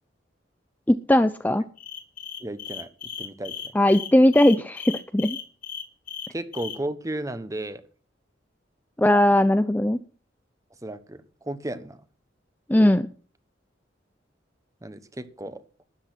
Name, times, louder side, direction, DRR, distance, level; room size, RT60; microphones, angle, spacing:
voice 1, 0.9-1.6 3.7-5.4 9.0-10.0 12.7-13.1, left 1 dB, 10° left, 11 dB, 0.5 m, -19 dB
sound 1, 1.8-6.8, left 8 dB, 50° left, 2.2 m, -36 dB
voice 2, 2.4-2.9 3.2-3.7 6.3-7.8 10.8-12.0 14.8-15.6, right 1 dB, 20° right, 13 dB, 1.1 m, -34 dB
13.0 x 10.0 x 6.0 m, 0.40 s
head